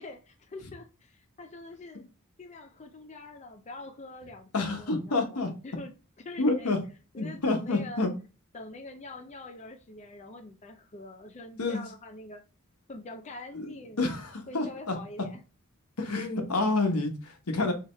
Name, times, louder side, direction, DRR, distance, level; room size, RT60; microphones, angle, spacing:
voice 1, 0.0-2.1 2.4-5.9 6.2-6.7 7.1-8.0 8.5-12.4 12.9-14.0 14.5-15.4, left 2 dB, 30° left, 0.5 m, -45 dB
voice 2, 4.5-5.5 6.4-6.8 7.2-8.1 11.6-11.8 13.5-13.7 14.0-15.0 16.0-17.7, left 2 dB, 90° left, 1.1 m, -28 dB
4.7 x 3.4 x 2.2 m
head